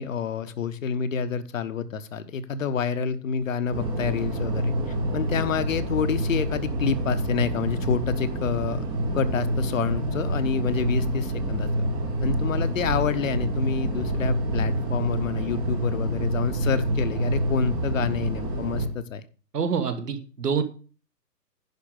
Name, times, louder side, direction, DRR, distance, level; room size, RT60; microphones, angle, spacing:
voice 1, 0.0-4.7 5.1-8.8 9.1-11.7 12.2-19.2, left 6 dB, 50° left, 12 dB, 1.0 m, -28 dB
sound 1, 3.7-18.9, right 1 dB, 10° right, 0.7 m, -27 dB
voice 2, 19.5-20.6, right 6 dB, 65° right, 8 dB, 1.7 m, -26 dB
10.5 x 5.0 x 6.3 m, 0.38 s
figure-of-eight pair, 130°, 50 cm